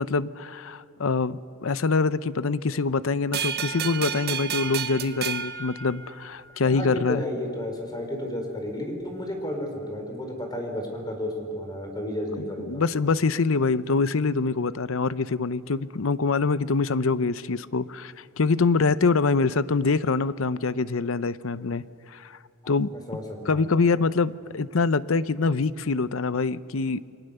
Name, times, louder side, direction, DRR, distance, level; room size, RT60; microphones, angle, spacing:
voice 1, 0.0-7.2 12.7-21.8 22.1-22.4 22.7-22.9 23.5-27.0, left 4 dB, 75° left, 16 dB, 0.7 m, -25 dB
sound 1, 3.3-6.6, right 8 dB, 50° right, 0.8 m, -31 dB
voice 2, 6.6-12.8 22.9-23.7, left 1 dB, 20° left, 3 dB, 4.3 m, -32 dB
29.0 x 22.0 x 6.8 m, 2.5 s
head